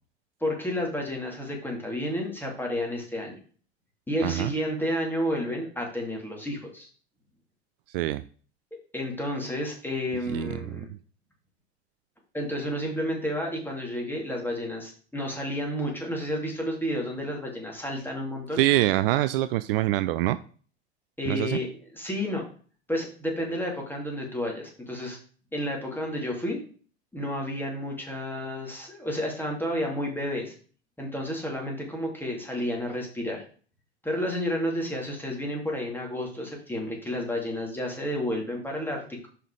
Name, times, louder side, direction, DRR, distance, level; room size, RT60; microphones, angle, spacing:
voice 1, 0.4-3.3 4.1-6.9 8.9-10.9 12.3-18.6 21.2-22.5 22.9-25.2 25.5-26.6 27.1-30.5 31.0-33.4 34.0-39.3, equal, 5° left, 0 dB, 2.9 m, -31 dB
voice 2, 4.2-4.5 7.9-8.2 10.3-10.8 18.6-20.4 21.3-21.6, right 15 dB, 60° right, 13 dB, 0.4 m, -25 dB
5.6 x 5.6 x 4.9 m, 0.42 s
figure-of-eight pair, 80°, 33 cm